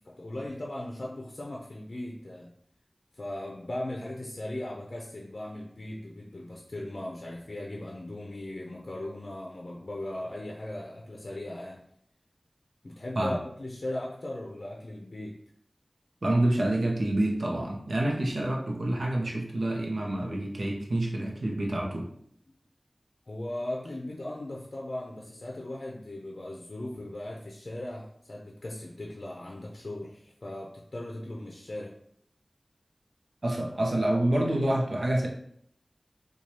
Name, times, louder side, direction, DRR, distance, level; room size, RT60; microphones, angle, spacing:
voice 1, 0.0-2.5 3.1-11.8 12.8-15.4 23.3-31.9, left 1 dB, 65° left, -1 dB, 0.5 m, -38 dB
voice 2, 16.2-22.0 33.4-35.3, right 1 dB, 80° right, -1 dB, 0.7 m, -27 dB
4.6 x 2.3 x 2.8 m, 0.67 s
wide cardioid pair, 50°, 0 cm